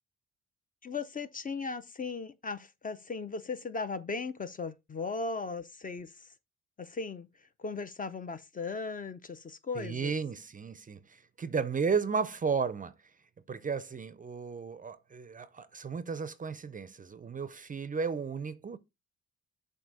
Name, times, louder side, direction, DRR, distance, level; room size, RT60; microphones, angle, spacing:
voice 1, 0.8-6.1 6.8-7.3 7.6-10.1, left 4 dB, 30° left, 0.5 m, -37 dB
voice 2, 9.7-12.9 13.5-18.8, right 5 dB, 25° right, 0.5 m, -34 dB
7.5 x 2.7 x 5.2 m
cardioid pair, 90°, 30 cm